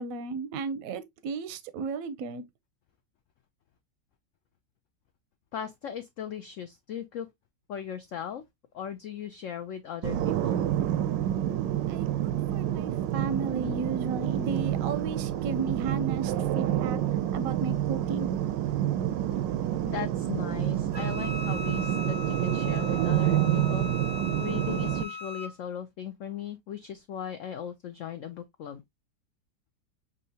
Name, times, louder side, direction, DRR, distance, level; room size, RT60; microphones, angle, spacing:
voice 1, 0.0-2.4 11.9-17.0 17.3-18.3, right 5 dB, 65° right, 0.9 m, -34 dB
voice 2, 5.5-7.3 7.7-8.4 8.7-10.7 19.9-23.9 24.4-28.8, left 9 dB, 85° left, 0.6 m, -38 dB
sound 1, 10.0-25.0, right 11 dB, 85° right, 1.3 m, -28 dB
Wind instrument woodwind instrument, 20.9-25.5, left 4 dB, 35° right, 0.7 m, -39 dB
6.4 x 2.7 x 2.7 m
omnidirectional pair, 1.9 m